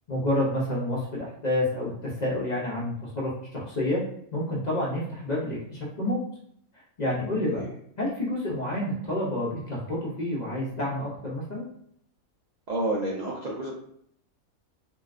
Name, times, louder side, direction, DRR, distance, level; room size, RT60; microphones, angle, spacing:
voice 1, 0.1-4.0 4.3-6.2 7.0-7.7 8.0-11.7, left 1 dB, 40° left, -5 dB, 0.6 m, -29 dB
voice 2, 12.7-13.7, right 2 dB, 70° right, -3 dB, 0.4 m, -29 dB
3.6 x 2.3 x 2.4 m, 0.68 s
omnidirectional pair, 1.5 m